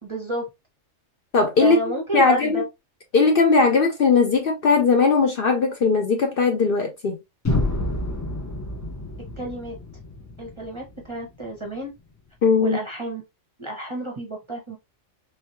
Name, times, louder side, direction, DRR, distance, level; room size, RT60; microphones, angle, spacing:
voice 1, 0.0-0.5 1.6-2.7 9.4-9.8 10.4-11.9 12.6-13.2 13.6-14.8, right 1 dB, 30° right, 0.6 m, -30 dB
voice 2, 1.3-1.8 2.1-2.6 3.1-7.1 12.4-12.8, left 4 dB, 55° left, 0.7 m, -19 dB
sound 1, 7.4-11.4, left 2 dB, 20° left, 0.4 m, -28 dB
3.2 x 3.1 x 2.7 m
omnidirectional pair, 1.3 m